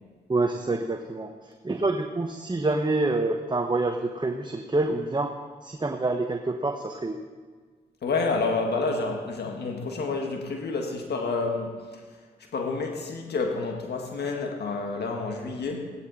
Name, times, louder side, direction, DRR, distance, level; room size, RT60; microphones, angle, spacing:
voice 1, 0.3-1.3 1.6-5.3 5.6-7.2, right 2 dB, 25° right, 4 dB, 1.1 m, -27 dB
voice 2, 8.0-11.8 12.5-15.9, left 3 dB, 70° left, 2 dB, 1.8 m, -29 dB
16.0 x 12.0 x 4.3 m, 1.5 s
supercardioid pair, 45°, 18 cm